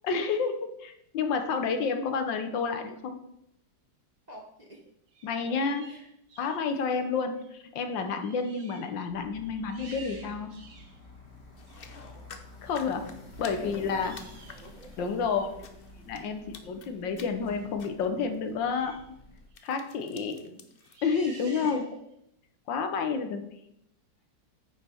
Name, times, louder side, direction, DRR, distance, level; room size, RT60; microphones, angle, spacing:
voice 1, 0.0-3.2 5.2-5.9 6.4-10.5 12.6-13.1 13.4-14.1 15.0-15.7 16.0-18.9 19.6-20.4 21.0-21.9 22.7-23.5, left 5 dB, 80° left, 7 dB, 1.6 m, -30 dB
voice 2, 4.3-4.8 5.5-5.6 5.8-6.1 6.7-6.8 11.9-12.4 13.4-14.0 14.5-14.9 20.5-20.6 21.5-22.0, equal, 35° right, 0 dB, 0.8 m, -48 dB
sound 1, 5.1-6.7 7.4-7.6 7.8-8.9 9.3-11.0 11.7-11.9 13.9-14.7 18.6-19.1 19.5-19.8 20.8-22.1, right 3 dB, 50° right, 1.2 m, -51 dB
sound 2, 9.1-19.5, left 1 dB, 35° left, 1.6 m, -50 dB
sound 3, 11.6-15.2 15.6-16.3 16.5-16.9 17.2-17.5 17.8-18.1 18.3-18.5 19.5-21.0, left 6 dB, 65° left, 0.5 m, -49 dB
9.4 x 5.5 x 4.5 m, 0.76 s
omnidirectional pair, 2.0 m